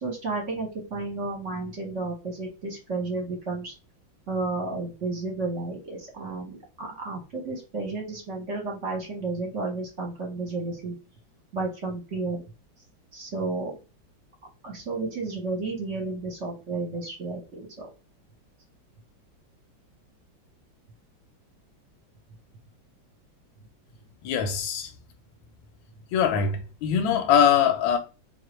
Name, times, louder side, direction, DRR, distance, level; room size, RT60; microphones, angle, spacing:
voice 1, 0.0-3.7 4.3-10.9 11.5-12.4 13.1-13.7 14.6-17.9, right 3 dB, 50° right, 1.1 m, -32 dB
voice 2, 24.2-24.9 26.1-28.0, left 8 dB, 90° left, 1.4 m, -22 dB
3.8 x 3.0 x 3.0 m
omnidirectional pair, 2.1 m